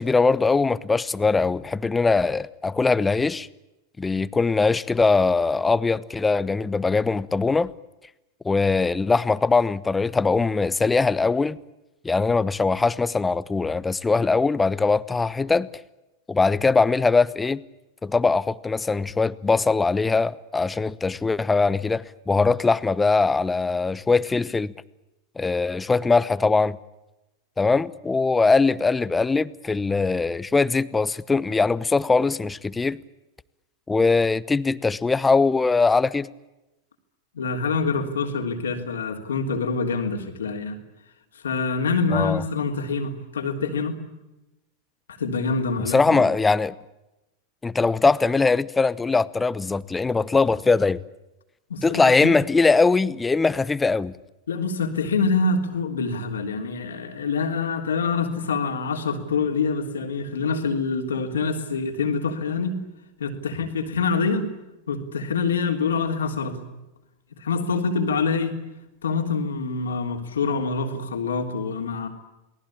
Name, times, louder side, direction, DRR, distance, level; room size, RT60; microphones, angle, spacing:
voice 1, 0.0-3.5 4.0-7.7 8.4-11.6 12.0-15.7 16.3-17.6 18.0-24.7 25.4-26.8 27.6-33.0 33.9-36.3 42.1-42.4 45.9-46.8 47.6-51.0 51.8-54.1, left 4 dB, 15° left, 0.9 m, -21 dB
voice 2, 37.3-40.8 41.4-44.0 45.2-46.2 51.7-52.3 54.5-62.8 63.2-64.5 64.9-66.6 67.3-68.6 69.0-72.1, left 4 dB, 85° left, 3.4 m, -25 dB
29.0 x 19.5 x 8.7 m
hypercardioid pair, 100°, 0 cm